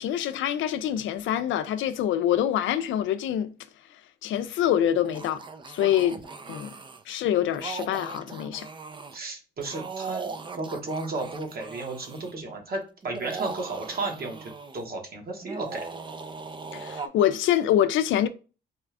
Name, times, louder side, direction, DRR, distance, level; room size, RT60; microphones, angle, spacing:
voice 1, 0.0-3.5 4.2-6.2 6.5-6.7 7.1-8.7 16.7-18.3, left 11 dB, 75° left, 0.4 m, -25 dB
sound 1, 5.0-7.0 7.5-9.2 9.6-12.3 13.0-14.9 15.4-17.1, right 4 dB, 25° right, 0.4 m, -39 dB
voice 2, 9.1-15.9, right 3 dB, 50° right, 1.3 m, -34 dB
4.3 x 2.4 x 3.3 m
cardioid pair, 90°, 20 cm